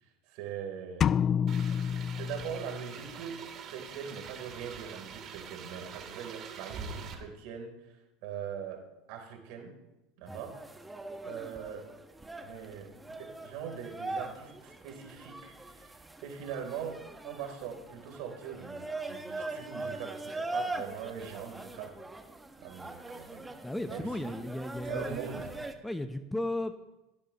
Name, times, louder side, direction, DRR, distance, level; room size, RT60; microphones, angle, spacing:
voice 1, 0.3-1.1 2.1-8.8 9.1-9.8 10.2-10.6 11.2-11.9 12.4-22.0 22.6-23.5 23.9-24.4 24.8-25.6, right 8 dB, 60° right, 2 dB, 3.8 m, -42 dB
sound 1, 1.0-3.0, left 8 dB, 35° left, 0.4 m, -29 dB
sound 2, 1.5-7.1, right 6 dB, 40° right, 2.4 m, -45 dB
sound 3, 10.3-25.7, right 2 dB, 10° right, 1.5 m, -41 dB
voice 2, 23.6-25.3 25.8-26.8, left 1 dB, 5° left, 9 dB, 1.0 m, -35 dB
18.0 x 16.5 x 3.1 m, 0.98 s
hypercardioid pair, 85°, 0 cm